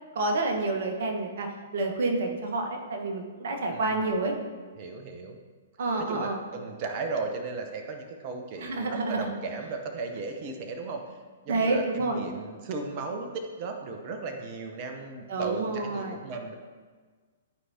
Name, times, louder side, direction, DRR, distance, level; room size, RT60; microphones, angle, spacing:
voice 1, 0.1-4.3 5.8-6.4 8.6-9.3 11.5-12.2 15.3-16.2, right 2 dB, 55° right, 2 dB, 1.2 m, -29 dB
voice 2, 3.7-4.2 4.8-5.4 6.1-16.5, right 3 dB, 40° right, 4 dB, 0.8 m, -36 dB
11.0 x 4.7 x 2.8 m, 1.5 s
figure-of-eight pair, 115°, 0 cm